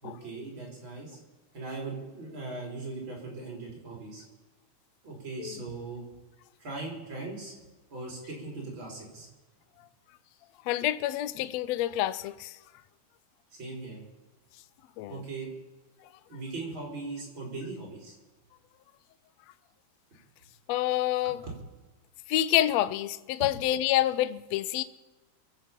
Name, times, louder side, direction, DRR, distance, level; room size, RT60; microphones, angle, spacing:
voice 1, 0.0-1.2 1.5-4.2 5.0-6.0 6.6-7.6 7.9-9.3 13.5-14.0 15.1-15.5 16.3-18.1, right 3 dB, 40° right, 4.5 m, -39 dB
voice 2, 10.7-12.5 15.0-15.2 20.7-21.5 22.3-24.8, left 13 dB, 80° left, 1.5 m, -27 dB
23.5 x 8.2 x 5.8 m
omnidirectional pair, 3.6 m